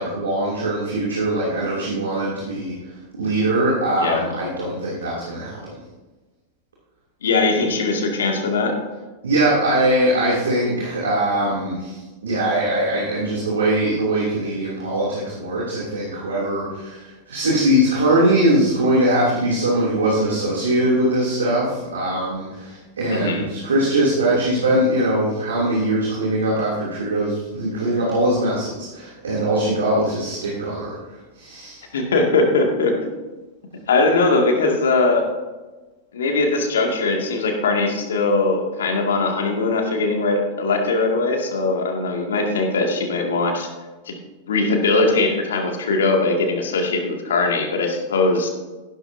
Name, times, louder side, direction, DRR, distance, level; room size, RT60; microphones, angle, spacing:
voice 1, 0.0-2.8 3.1-5.7 9.2-31.9, right 1 dB, 70° right, -5 dB, 2.9 m, -21 dB
voice 2, 7.2-8.8 23.1-23.5 31.9-33.1 33.9-35.3 36.1-43.7 44.1-44.2 44.5-48.5, left 3 dB, 65° left, 2 dB, 2.3 m, -20 dB
15.0 x 12.0 x 2.8 m, 1.2 s
figure-of-eight pair, 90°, 0 cm